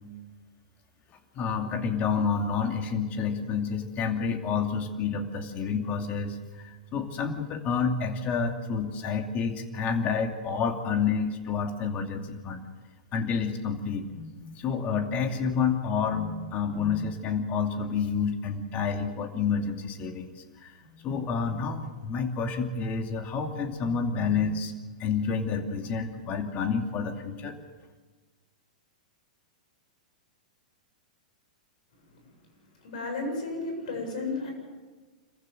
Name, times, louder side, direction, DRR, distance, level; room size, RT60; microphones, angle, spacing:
voice 1, 1.3-12.7 13.1-24.7 25.0-27.6, left 5 dB, 35° left, 5 dB, 2.6 m, -29 dB
voice 2, 32.8-34.5, left 3 dB, 65° left, 3 dB, 7.9 m, -33 dB
26.5 x 15.0 x 7.8 m, 1.4 s
hypercardioid pair, 110°, 4 cm